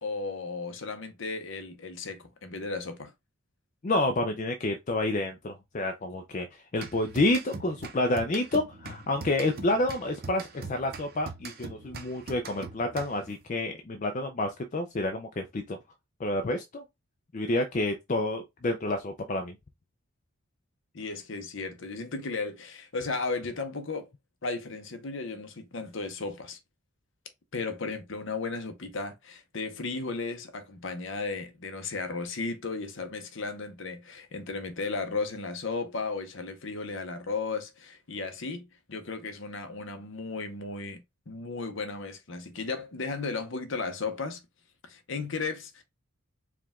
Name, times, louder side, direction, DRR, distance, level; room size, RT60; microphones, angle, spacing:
voice 1, 0.0-3.1 20.9-24.1 24.4-26.6 27.5-41.0 41.3-44.4 44.8-45.8, left 4 dB, 55° left, 0.8 m, -35 dB
voice 2, 3.8-15.8 16.2-16.8 17.3-19.6, left 2 dB, 35° left, 0.4 m, -29 dB
sound 1, 6.8-13.4, right 4 dB, 45° right, 0.6 m, -43 dB
4.7 x 2.3 x 3.5 m
head